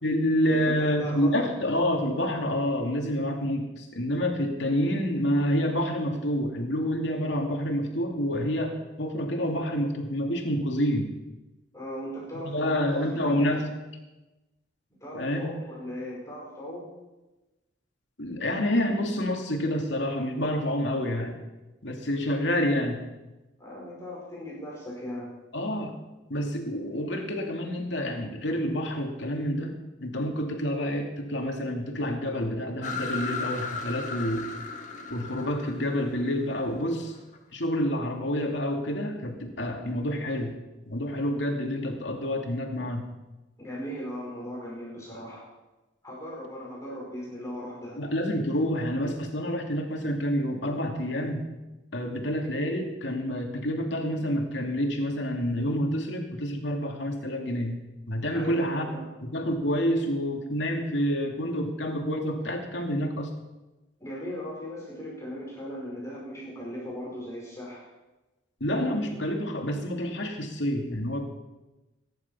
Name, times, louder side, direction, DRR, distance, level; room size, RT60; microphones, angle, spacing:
voice 1, 0.0-11.1 12.4-13.7 15.1-15.5 18.2-21.4 21.8-23.0 25.5-25.9 26.3-34.5 35.1-37.1 37.5-40.6 40.9-43.1 48.0-51.5 51.9-57.8 58.1-58.9 59.2-63.3 68.6-71.2, equal, 70° left, 2 dB, 2.6 m, -28 dB
voice 2, 0.6-1.5 11.7-13.6 15.0-16.9 23.6-25.3 43.6-45.5 46.0-48.0 58.3-59.1 64.0-67.9, equal, 15° left, -4 dB, 5.1 m, -38 dB
sound 1, 32.8-37.4, left 4 dB, 40° left, 1.7 m, -36 dB
22.5 x 11.0 x 5.6 m, 1.1 s
head